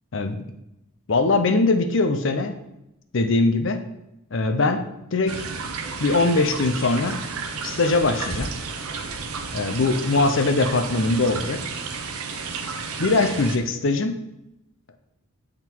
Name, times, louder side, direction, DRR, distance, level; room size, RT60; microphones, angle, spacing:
voice 1, 0.1-0.4 1.1-2.5 3.1-3.8 4.3-4.8 5.1-5.4 6.0-7.2 7.6-8.5 9.5-11.6 13.0-14.2, left 3 dB, 55° left, 8 dB, 0.6 m, -21 dB
sound 1, 5.3-13.6, right 4 dB, 85° right, 0.7 m, -32 dB
7.9 x 3.7 x 4.5 m, 0.88 s
head